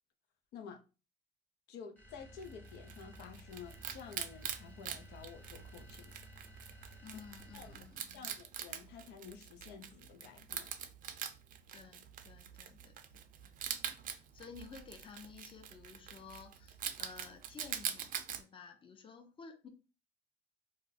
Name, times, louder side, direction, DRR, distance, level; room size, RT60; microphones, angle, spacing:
voice 1, 0.5-0.8 1.7-6.1 7.5-7.9 8.1-10.7, left 6 dB, 80° left, 0.6 m, -51 dB
sound 1, 2.0-8.1, equal, 10° left, 0.9 m, -55 dB
Wild animals, 2.4-18.4, right 9 dB, 55° right, 0.4 m, -44 dB
voice 2, 7.0-8.3 11.7-13.0 13.4-13.6 14.1-19.7, left 5 dB, 30° left, 0.6 m, -53 dB
2.4 x 2.1 x 3.9 m
cardioid pair, 110°, 17 cm